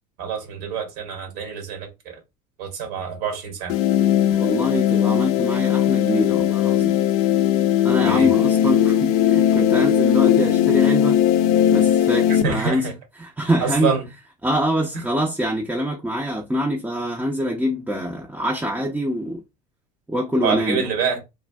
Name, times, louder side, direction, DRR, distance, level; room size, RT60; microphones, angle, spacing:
voice 1, 0.2-2.2 2.6-3.7 8.0-8.3 12.4-12.9 13.6-14.1 20.4-21.2, right 6 dB, 70° right, 1.5 m, -26 dB
sound 1, 3.7-12.4, left 10 dB, 70° left, 0.4 m, -18 dB
voice 2, 4.3-6.9 7.8-11.2 11.7-12.9 13.2-13.9 14.4-19.4 20.1-20.9, equal, 5° right, 0.6 m, -24 dB
3.2 x 2.4 x 2.3 m
hypercardioid pair, 80°, 20 cm